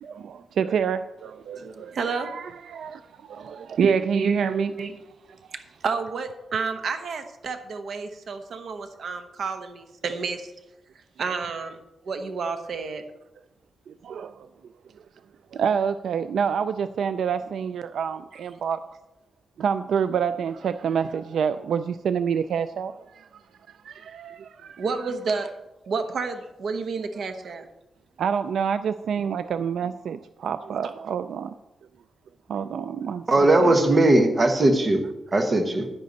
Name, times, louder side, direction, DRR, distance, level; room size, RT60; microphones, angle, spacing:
voice 1, 0.0-3.0 3.3-4.7 13.9-14.5 15.5-18.8 19.6-23.3 23.7-25.1 28.2-31.5 32.5-33.8, right 7 dB, 85° right, 12 dB, 0.3 m, -27 dB
voice 2, 1.6-2.9 3.3-5.0 5.5-10.5 10.9-13.0 24.8-25.5 25.8-27.7, right 4 dB, 65° right, 7 dB, 1.0 m, -31 dB
voice 3, 33.3-35.0 35.3-35.9, right 2 dB, 30° right, 5 dB, 1.2 m, -19 dB
10.5 x 10.0 x 4.0 m, 0.97 s
wide cardioid pair, 150°, 0 cm